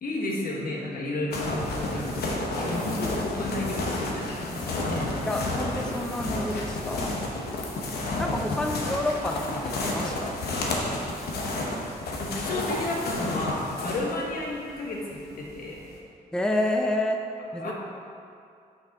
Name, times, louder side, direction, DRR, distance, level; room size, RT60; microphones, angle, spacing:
voice 1, 0.0-5.1 8.5-8.8 12.2-15.9 17.6-17.7, left 2 dB, 65° left, -2 dB, 1.3 m, -33 dB
sound 1, 1.3-16.0, left 2 dB, 90° left, 0.9 m, -31 dB
voice 2, 5.3-7.1 8.2-10.3 16.3-17.2 17.5-17.7, left 1 dB, 5° left, 2 dB, 0.5 m, -29 dB
6.3 x 5.3 x 4.1 m, 2.4 s
cardioid pair, 80°, 16 cm